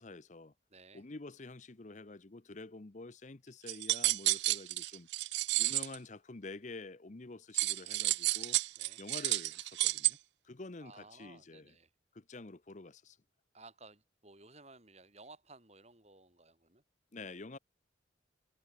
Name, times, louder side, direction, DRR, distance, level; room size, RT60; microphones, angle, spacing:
voice 1, 0.0-0.5 0.9-5.1 5.6-8.6 9.0-10.2 10.4-11.7 12.1-13.2 17.1-17.6, left 3 dB, 40° left, 0.8 m, -48 dB
voice 2, 0.7-1.1 8.8-9.0 10.8-11.9 13.5-16.8, right 3 dB, 35° right, 5.7 m, -57 dB
sound 1, 3.7-6.0 7.6-10.1, right 18 dB, 65° right, 0.4 m, -31 dB
head